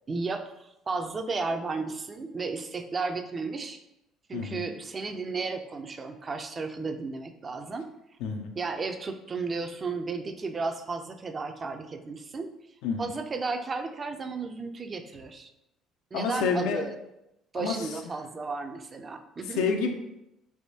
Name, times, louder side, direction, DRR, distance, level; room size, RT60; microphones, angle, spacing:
voice 1, 0.1-0.5 0.9-3.8 4.3-7.9 8.6-12.5 13.0-15.5 16.1-17.0 17.5-19.6, right 4 dB, 35° right, 7 dB, 0.4 m, -33 dB
voice 2, 4.3-4.6 8.2-8.5 12.8-13.1 16.1-16.8 17.6-17.9 19.6-19.9, left 5 dB, 85° left, 4 dB, 0.4 m, -28 dB
3.4 x 2.6 x 2.7 m, 0.87 s
supercardioid pair, 85°, 0 cm